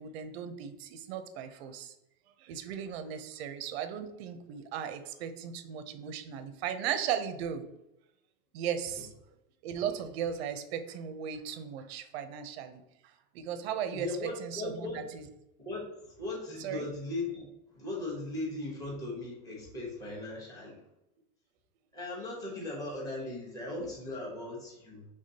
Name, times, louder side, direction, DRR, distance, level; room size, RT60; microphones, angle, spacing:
voice 1, 0.0-1.9 2.4-7.6 8.5-9.1 9.6-12.8 13.3-14.1 14.4-15.2 16.6-16.9, right 8 dB, 45° right, 9 dB, 0.5 m, -36 dB
voice 2, 13.9-15.1 15.6-17.4 17.7-20.8 21.9-25.1, left 2 dB, 10° left, -4 dB, 0.8 m, -38 dB
5.1 x 3.4 x 2.7 m, 0.89 s
supercardioid pair, 165°, 44 cm